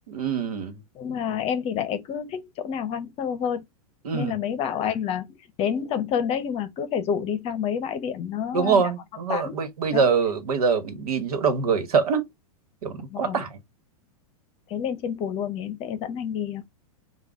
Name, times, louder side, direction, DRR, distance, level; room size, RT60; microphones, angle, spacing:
voice 1, 0.1-0.8 4.0-4.4 8.5-12.3 12.8-13.6, right 5 dB, 80° right, 1.3 m, -24 dB
voice 2, 1.0-3.6 4.1-8.8 9.3-9.6 9.9-10.0 13.1-13.4 14.7-16.7, left 8 dB, 30° left, 0.8 m, -29 dB
3.8 x 2.4 x 4.6 m
hypercardioid pair, 125°, 19 cm